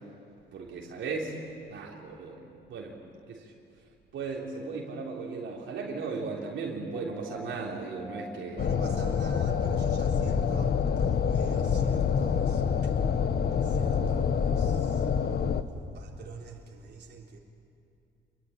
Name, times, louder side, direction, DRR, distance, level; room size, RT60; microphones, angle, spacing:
voice 1, 0.5-1.4 1.7-3.0 3.3-3.5 4.1-8.6, right 4 dB, 75° right, 3.6 m, -36 dB
sound 1, 6.9-14.8, equal, 5° right, 2.0 m, -45 dB
sound 2, 8.6-15.6, left 7 dB, 55° left, 1.2 m, -26 dB
voice 2, 8.6-13.0 13.5-15.1 15.9-17.4, right 5 dB, 55° right, 3.8 m, -47 dB
26.0 x 23.0 x 9.0 m
cardioid pair, 90°, 20 cm